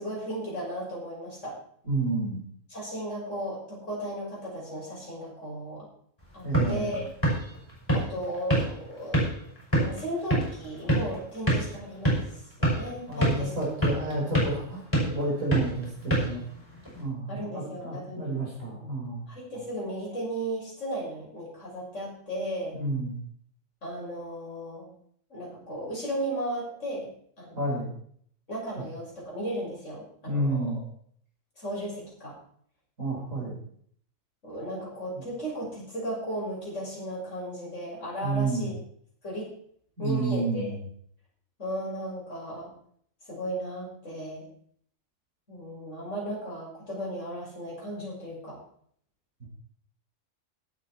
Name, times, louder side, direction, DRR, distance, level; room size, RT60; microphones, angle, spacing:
voice 1, 0.0-1.6 2.7-5.9 6.3-7.0 7.9-9.2 9.8-13.6 17.3-18.3 19.3-22.8 23.8-24.9 25.3-27.1 27.4-27.7 28.5-30.7 31.6-32.3 34.4-38.7 39.2-39.5 40.0-40.7 41.6-42.7 43.3-44.4 45.5-48.6, right 1 dB, 70° left, -5 dB, 6.6 m, -35 dB
voice 2, 1.8-2.4 6.4-7.1 13.1-16.4 16.9-19.2 22.7-23.2 27.6-27.9 28.8-28.9 30.3-30.8 33.0-33.6 35.1-35.2 38.2-38.7 40.0-40.8 49.4-49.5, right 2 dB, 90° right, -4 dB, 5.7 m, -30 dB
sound 1, 6.2-17.0, right 1 dB, 20° left, 6.2 m, -29 dB
17.5 x 8.6 x 4.4 m, 0.63 s
omnidirectional pair, 1.3 m